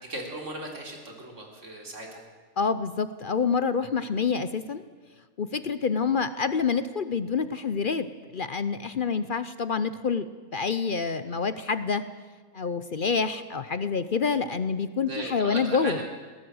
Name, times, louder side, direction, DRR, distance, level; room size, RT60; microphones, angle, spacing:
voice 1, 0.1-2.3 15.0-16.2, right 1 dB, 55° right, 1 dB, 3.9 m, -37 dB
voice 2, 2.6-4.8 5.4-10.2 10.5-12.0 12.5-16.0, left 5 dB, 50° left, 12 dB, 0.7 m, -27 dB
21.0 x 17.5 x 7.8 m, 1.4 s
omnidirectional pair, 1.6 m